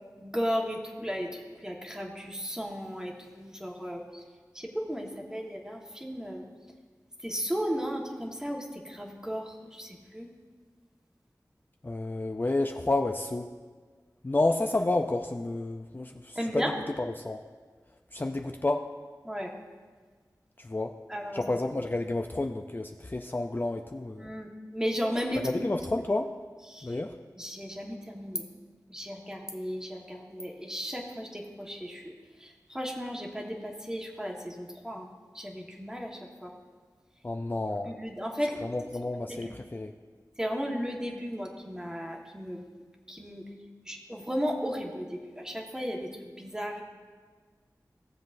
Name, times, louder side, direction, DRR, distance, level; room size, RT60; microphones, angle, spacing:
voice 1, 0.2-4.2 4.5-6.4 7.2-10.3 16.3-16.7 19.2-19.5 21.1-21.4 24.2-25.5 26.7-27.0 27.4-28.4 28.9-32.1 32.4-35.1 35.3-36.5 37.8-38.6 39.3-39.5 40.4-42.6 43.1-43.4 43.9-46.1 46.4-46.8, equal, 10° right, 0 dB, 1.4 m, -35 dB
voice 2, 11.8-13.5 14.2-16.7 17.0-17.4 18.1-18.9 20.6-21.0 21.3-24.3 25.3-26.3 26.8-27.2 37.2-38.0 38.6-39.9, left 2 dB, 30° left, 4 dB, 0.4 m, -30 dB
16.5 x 7.4 x 2.6 m, 1.5 s
wide cardioid pair, 55°, 7 cm